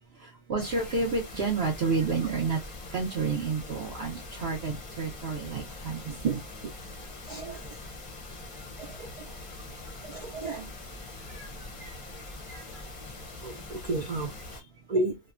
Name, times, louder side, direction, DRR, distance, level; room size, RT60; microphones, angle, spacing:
voice 1, 0.1-2.6 2.9-6.1 8.5-8.7 11.2-12.9, right 4 dB, 60° right, 0.8 m, -31 dB
sound 1, 0.6-14.6, left 2 dB, 40° left, 0.5 m, -43 dB
voice 2, 6.1-6.4 7.3-7.9 8.8-9.4 10.0-10.7 13.4-15.2, right 3 dB, 75° right, 0.3 m, -33 dB
3.0 x 2.1 x 2.3 m
omnidirectional pair, 1.3 m